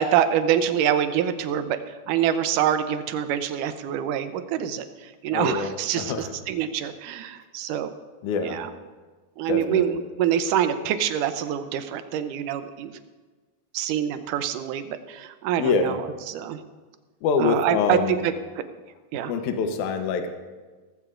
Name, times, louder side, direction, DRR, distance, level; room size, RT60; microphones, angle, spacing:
voice 1, 0.0-1.8 2.1-7.9 8.4-8.7 9.4-12.9 13.7-16.0 16.3-16.6 17.4-18.3 19.1-19.3, right 9 dB, 85° right, 10 dB, 2.3 m, -25 dB
voice 2, 5.3-6.3 8.2-8.6 9.5-10.0 15.6-16.0 17.2-18.2 19.3-20.3, left 5 dB, 75° left, 6 dB, 2.3 m, -25 dB
17.5 x 15.5 x 2.5 m, 1.3 s
omnidirectional pair, 3.6 m